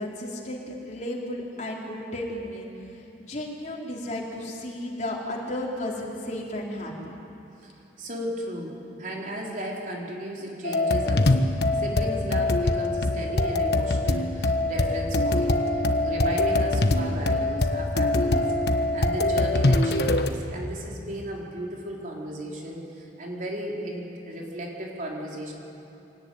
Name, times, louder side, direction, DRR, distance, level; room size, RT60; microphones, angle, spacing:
voice 1, 0.0-2.7 2.9-7.1, left 1 dB, 40° left, -2 dB, 4.0 m, -34 dB
voice 2, 8.0-18.5 18.9-25.5, equal, 45° right, -2 dB, 4.0 m, -35 dB
sound 1, 10.6-20.3, left 2 dB, 65° left, 1.3 m, -23 dB
25.0 x 18.0 x 9.4 m, 2.8 s
head